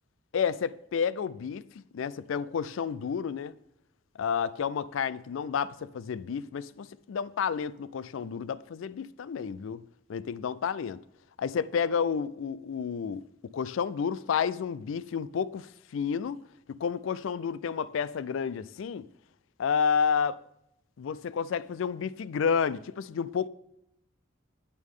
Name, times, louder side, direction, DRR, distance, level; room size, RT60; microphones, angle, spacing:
voice 1, 0.3-1.6 1.9-3.5 4.2-9.8 10.1-11.0 11.4-13.2 13.5-16.4 16.8-19.1 19.6-20.4 21.0-23.5, left 6 dB, 80° left, 0.4 m, -30 dB
9.5 x 8.5 x 3.7 m
head